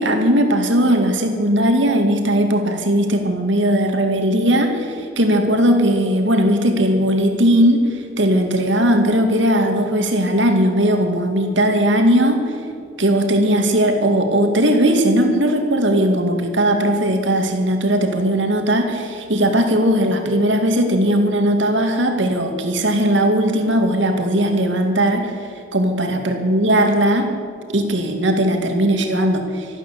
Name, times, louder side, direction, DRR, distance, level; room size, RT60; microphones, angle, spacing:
voice 1, 0.0-12.4 13.0-25.3 25.7-27.3 27.7-29.7, right 1 dB, 70° right, 5 dB, 2.2 m, -18 dB
13.5 x 12.5 x 8.4 m, 2.4 s
head